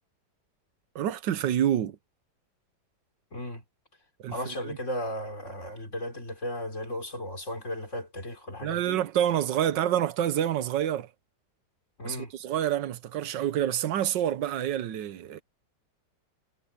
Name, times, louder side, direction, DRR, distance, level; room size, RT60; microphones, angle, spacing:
voice 1, 0.9-2.0 4.2-4.8 8.6-11.1 12.0-15.4, right 10 dB, 85° right, 1.6 m, -28 dB
voice 2, 3.3-3.6 4.3-9.0 12.0-12.3, equal, 40° left, 4.4 m, -35 dB
omnidirectional pair, 1.9 m